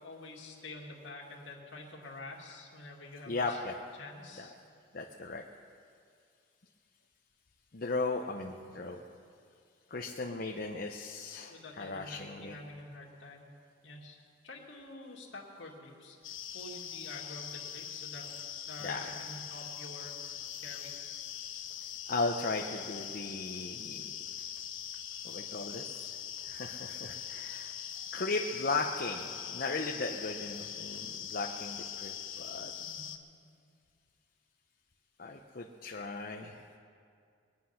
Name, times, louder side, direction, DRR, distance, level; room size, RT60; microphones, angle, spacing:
voice 1, 0.0-3.6 4.0-4.5 11.5-13.5 13.8-14.2 14.4-18.3 18.7-21.0 32.8-33.1, left 2 dB, 65° left, -2 dB, 2.4 m, -48 dB
voice 2, 3.3-3.7 4.4-4.5 4.9-5.4 7.7-9.0 9.9-12.6 18.8-19.1 21.8-24.2 25.2-27.7 28.1-32.7 35.2-36.7, left 3 dB, 45° left, 1 dB, 0.7 m, -37 dB
sound 1, 16.2-33.2, left 9 dB, 80° left, 1.0 m, -42 dB
22.5 x 9.5 x 5.8 m, 2.3 s
head